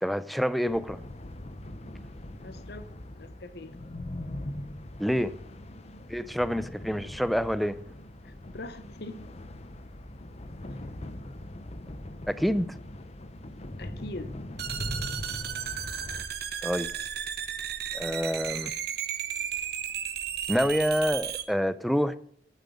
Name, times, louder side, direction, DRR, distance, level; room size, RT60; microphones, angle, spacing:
voice 1, 0.0-1.0 5.0-5.3 6.1-7.8 12.3-12.7 16.6-16.9 17.9-18.7 20.5-22.1, equal, ahead, 0.4 m, -27 dB
sound 1, 0.6-16.3, left 1 dB, 35° left, 0.7 m, -41 dB
voice 2, 2.4-3.8 8.2-9.2 13.8-14.3, left 2 dB, 60° left, 1.0 m, -42 dB
sound 2, 14.6-21.4, right 9 dB, 60° right, 1.0 m, -34 dB
8.9 x 7.6 x 8.4 m
head